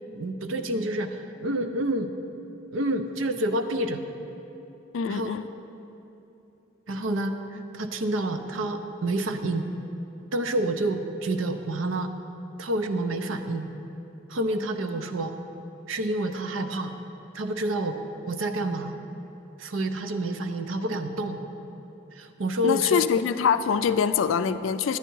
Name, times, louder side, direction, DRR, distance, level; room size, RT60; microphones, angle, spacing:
voice 1, 0.1-2.1 2.7-4.0 5.1-5.5 6.9-9.6 10.3-12.1 12.6-13.7 14.3-15.3 15.9-16.9 17.3-18.0 18.3-19.0 19.6-21.4 22.1-23.1, right 1 dB, 85° right, 7 dB, 0.6 m, -28 dB
voice 2, 4.9-5.5 22.6-25.0, left 7 dB, 80° left, 12 dB, 0.3 m, -24 dB
10.0 x 9.6 x 4.6 m, 2.9 s
head